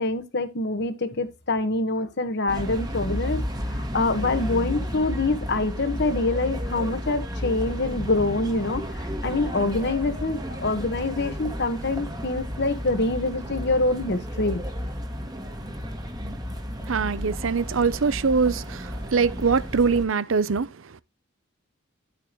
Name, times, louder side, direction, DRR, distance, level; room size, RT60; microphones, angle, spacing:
voice 1, 0.0-3.4 3.7-14.6, left 2 dB, 60° left, 1.4 m, -25 dB
sound 1, 2.5-20.0, equal, 20° right, 1.9 m, -32 dB
voice 2, 16.9-21.0, right 5 dB, 85° right, 0.7 m, -23 dB
11.0 x 8.5 x 3.0 m
head